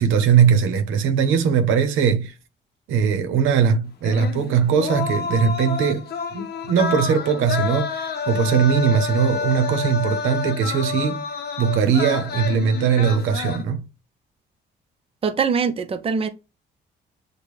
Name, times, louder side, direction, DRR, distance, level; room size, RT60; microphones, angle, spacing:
voice 1, 0.0-2.3 2.9-11.2 11.6-13.9, right 7 dB, 90° right, 0.7 m, -20 dB
sound 1, 4.0-13.6, left 6 dB, 55° left, 0.7 m, -29 dB
voice 2, 15.2-16.3, right 5 dB, 30° right, 0.6 m, -22 dB
6.6 x 2.2 x 3.1 m
cardioid pair, 90°, 20 cm